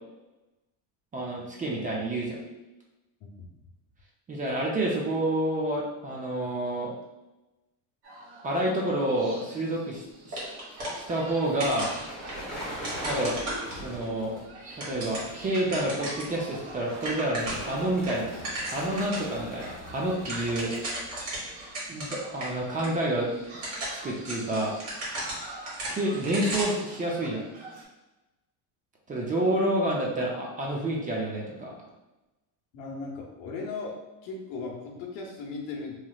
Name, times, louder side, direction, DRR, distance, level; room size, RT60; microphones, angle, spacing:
voice 1, 1.1-2.4 4.3-6.9 8.4-10.4 10.9-11.9 13.0-13.3 13.8-14.3 14.8-18.3 18.7-20.7 21.9-23.3 23.9-24.7 25.9-27.4 29.1-31.7, right 1 dB, 20° right, -3 dB, 0.5 m, -29 dB
voice 2, 3.2-3.5 32.7-36.0, left 4 dB, 80° left, 0 dB, 0.9 m, -37 dB
sound 1, 8.0-27.8, right 2 dB, 70° right, 1.2 m, -47 dB
sound 2, 10.3-11.3 11.6-14.1 14.6-16.4 16.7-16.8 17.0-17.7 18.0-19.3 19.6-19.7 20.0-22.5 22.8-22.9 23.4-26.9, right 1 dB, 50° right, 1.4 m, -35 dB
sound 3, 10.8-22.1 22.4-22.7 23.1-23.2 24.8-26.7, equal, ahead, 0.9 m, -44 dB
3.1 x 2.9 x 2.3 m, 1.0 s
cardioid pair, 140°, 39 cm